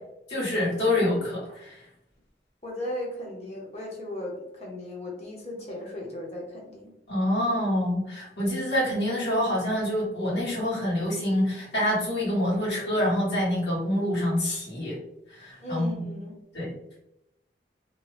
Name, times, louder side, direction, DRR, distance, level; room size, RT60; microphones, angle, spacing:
voice 1, 0.3-1.7 7.1-15.0 15.4-16.0 16.5-16.7, left 1 dB, 70° left, -7 dB, 1.5 m, -26 dB
voice 2, 2.6-6.9 15.6-16.3, left 1 dB, 35° left, -2 dB, 0.9 m, -36 dB
2.8 x 2.3 x 3.2 m, 0.82 s
head